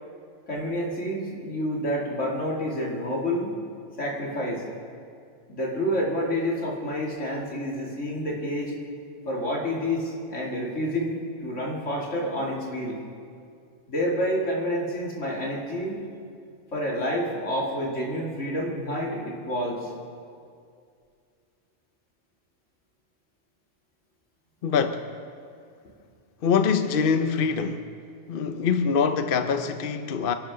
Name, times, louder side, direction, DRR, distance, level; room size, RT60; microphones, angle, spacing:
voice 1, 0.5-3.6 4.0-4.6 5.5-8.8 9.2-11.2 11.4-13.0 13.9-15.9 16.7-19.9, equal, 75° left, 3.0 m, -28 dB
voice 2, 24.6-25.0 26.4-27.9 28.3-30.3, left 6 dB, 55° left, 0.8 m, -24 dB
26.5 x 12.0 x 3.8 m
omnidirectional pair, 1.3 m